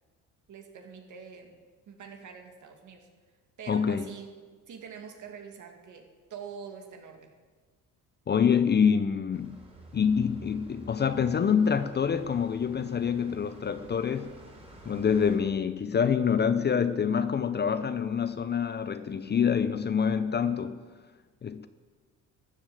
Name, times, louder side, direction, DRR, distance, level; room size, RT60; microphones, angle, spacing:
voice 1, 0.5-1.6 1.9-3.1 3.6-4.3 4.7-7.3, right 6 dB, 55° right, 2.2 m, -45 dB
voice 2, 3.7-4.1 8.3-9.6 9.9-14.4 14.9-20.8 21.4-21.7, left 7 dB, 30° left, 0.6 m, -26 dB
sound 1, 9.3-15.4, right 2 dB, 15° right, 3.3 m, -50 dB
13.5 x 7.2 x 7.8 m
cardioid pair, 90°, 35 cm